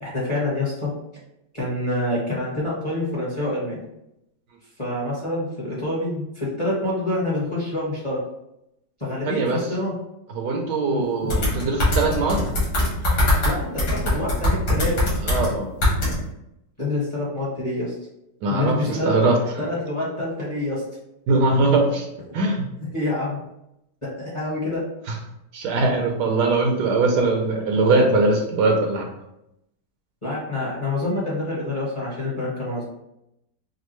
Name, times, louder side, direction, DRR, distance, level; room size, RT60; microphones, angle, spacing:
voice 1, 0.0-0.9 1.5-3.8 4.8-8.2 9.0-9.9 10.9-11.4 13.4-15.1 16.8-17.9 18.5-19.1 19.6-20.8 22.9-23.4 24.2-24.8 30.2-32.8, left 1 dB, 20° left, -6 dB, 1.0 m, -27 dB
voice 2, 9.2-9.6 10.4-12.5 15.2-15.7 18.4-19.3 21.3-22.0 22.3-22.7 25.5-29.1, right 3 dB, 70° right, 1 dB, 1.2 m, -21 dB
sound 1, 11.3-13.5 13.8-15.5 15.8-16.2, left 1 dB, 85° left, 2.4 m, -21 dB
5.2 x 2.2 x 3.1 m, 0.83 s
omnidirectional pair, 2.0 m